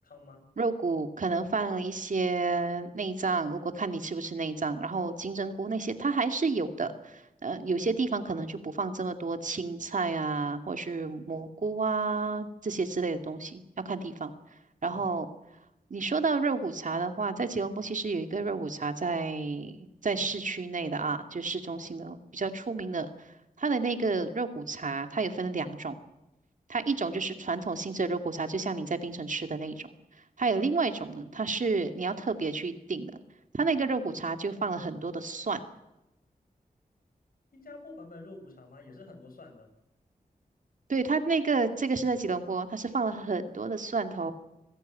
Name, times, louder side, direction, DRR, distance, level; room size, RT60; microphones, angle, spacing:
voice 1, 0.0-0.5 14.9-15.0 37.5-39.7, left 2 dB, 75° left, 4 dB, 6.9 m, -48 dB
voice 2, 0.6-14.3 14.8-15.3 15.9-23.3 23.6-25.9 26.7-29.9 30.4-33.1 33.5-35.6 40.9-44.3, right 4 dB, 60° right, 8 dB, 2.4 m, -30 dB
25.5 x 16.5 x 9.4 m, 0.93 s
wide cardioid pair, 70°, 15 cm